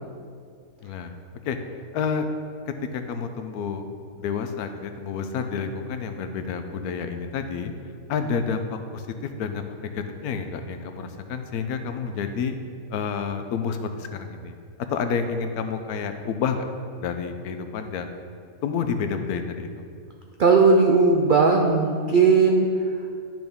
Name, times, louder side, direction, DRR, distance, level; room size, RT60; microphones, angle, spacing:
voice 1, 0.8-1.1 1.4-1.6 1.9-2.3 2.9-3.9 4.2-7.7 8.1-12.5 12.9-14.5 14.9-16.6 17.0-18.1 18.6-19.7, left 6 dB, 90° left, 7 dB, 1.1 m, -29 dB
voice 2, 20.4-22.7, right 4 dB, 90° right, 2 dB, 0.4 m, -17 dB
10.5 x 6.0 x 3.6 m, 2.3 s
omnidirectional pair, 1.6 m